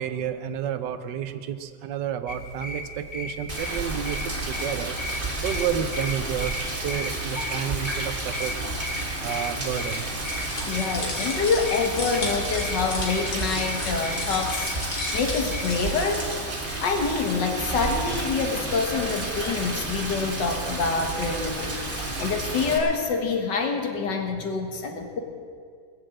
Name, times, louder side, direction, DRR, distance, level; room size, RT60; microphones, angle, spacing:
voice 1, 0.0-8.6 9.2-10.2, right 9 dB, 80° right, 11 dB, 1.4 m, -31 dB
sound 1, 2.3-15.6, left 1 dB, 30° left, 1.3 m, -35 dB
Rain, 3.5-22.8, right 2 dB, 30° right, 2.0 m, -31 dB
sound 2, 10.2-16.2, left 2 dB, 60° left, 2.8 m, -35 dB
voice 2, 10.6-14.7 15.1-16.3 16.8-21.8 22.2-25.2, left 4 dB, 80° left, 4 dB, 2.1 m, -26 dB
20.5 x 7.6 x 7.6 m, 2.1 s
omnidirectional pair, 1.9 m